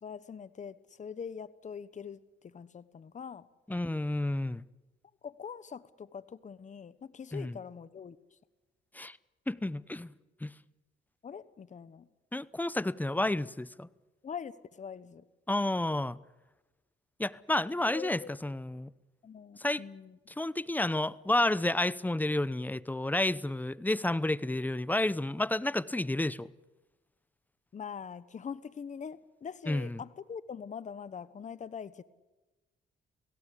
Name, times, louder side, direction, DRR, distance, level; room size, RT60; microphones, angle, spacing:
voice 1, 0.0-3.5 5.2-8.2 11.2-12.1 14.2-15.3 17.9-18.3 19.2-20.2 27.7-32.0, left 7 dB, 40° left, 1.1 m, -43 dB
voice 2, 3.7-4.6 7.3-7.6 8.9-9.2 9.5-10.1 10.4-10.5 12.3-13.9 15.5-16.2 17.2-18.9 19.6-19.8 20.4-26.5 29.7-30.0, left 1 dB, 10° left, 0.8 m, -30 dB
29.0 x 17.5 x 8.4 m
cardioid pair, 90°, 20 cm